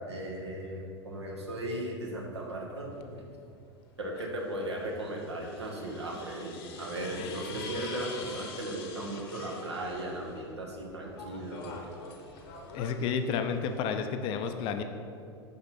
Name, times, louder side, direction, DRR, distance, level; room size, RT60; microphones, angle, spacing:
voice 1, 0.1-3.2 4.0-11.8, right 1 dB, 80° right, -1 dB, 1.1 m, -37 dB
sound 1, 2.9-3.1 4.4-10.4 10.8-14.0, left 4 dB, 55° left, 0.9 m, -46 dB
voice 2, 12.7-14.8, left 6 dB, 40° left, 7 dB, 0.5 m, -31 dB
5.8 x 5.3 x 4.1 m, 2.4 s
figure-of-eight pair, 90°, 14 cm